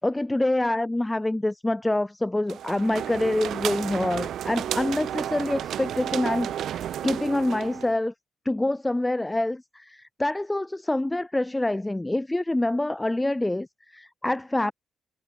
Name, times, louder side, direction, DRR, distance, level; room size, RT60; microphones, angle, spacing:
voice 1, 0.0-8.1 8.4-14.7, left 1 dB, 10° left, 5.8 m, -26 dB
sound 1, 2.5-8.0, right 10 dB, 70° right, 1.9 m, -32 dB
cardioid pair, 90°, 0 cm